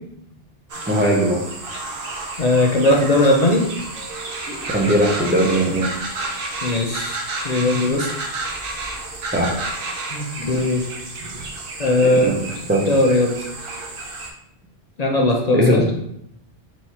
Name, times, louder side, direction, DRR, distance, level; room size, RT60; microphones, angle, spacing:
sound 1, 0.7-14.3, right 2 dB, 60° right, 0.9 m, -31 dB
voice 1, 0.9-1.4 4.7-5.9 9.3-9.6 12.0-12.4 12.7-12.9 15.5-15.9, right 1 dB, 20° right, -1 dB, 0.3 m, -19 dB
voice 2, 2.4-3.7 6.6-8.1 10.1-10.8 11.8-12.3 12.9-13.3 15.0-15.8, left 1 dB, 45° left, 0 dB, 0.6 m, -18 dB
3.7 x 3.0 x 4.1 m, 0.75 s
omnidirectional pair, 1.1 m